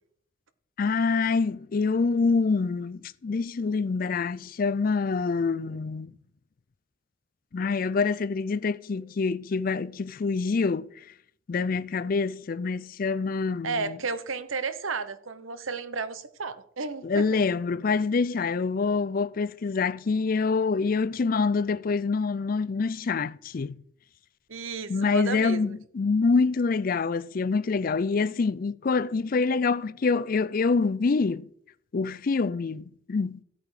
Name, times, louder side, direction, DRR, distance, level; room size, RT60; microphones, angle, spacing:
voice 1, 0.8-6.1 7.5-10.9 11.5-14.0 17.0-23.8 24.9-31.4 31.9-33.4, left 4 dB, 45° left, 0.4 m, -26 dB
voice 2, 13.6-17.4 24.5-25.8, right 4 dB, 85° right, 0.9 m, -33 dB
14.0 x 8.5 x 4.9 m
head